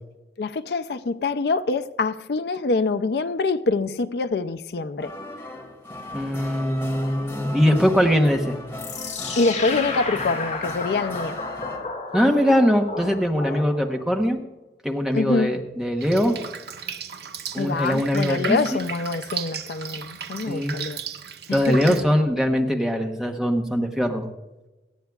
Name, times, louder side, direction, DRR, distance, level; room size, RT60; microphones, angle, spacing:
voice 1, 0.4-5.1 9.4-11.4 15.1-15.5 17.6-21.0 21.5-21.9, left 3 dB, 65° left, 0.4 m, -25 dB
sound 1, 5.0-11.8, left 1 dB, 15° left, 2.3 m, -37 dB
voice 2, 6.1-8.6 12.1-14.4 14.8-16.4 17.5-18.8 20.5-20.7 21.5-24.3, equal, 5° right, 1.0 m, -21 dB
sound 2, 8.8-14.1, left 3 dB, 40° left, 4.2 m, -32 dB
Drip, 16.0-22.0, right 7 dB, 65° right, 0.7 m, -35 dB
18.0 x 13.5 x 2.3 m
head